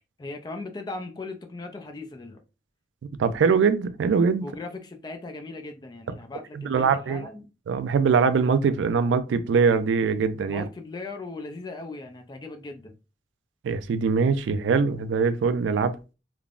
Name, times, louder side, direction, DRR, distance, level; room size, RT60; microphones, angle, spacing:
voice 1, 0.2-2.4 4.4-7.5 10.5-12.9, left 3 dB, 25° left, 0.3 m, -38 dB
voice 2, 3.2-4.5 6.5-7.3 7.7-10.7 13.6-16.0, right 5 dB, 90° right, 0.3 m, -22 dB
3.4 x 2.0 x 2.3 m
head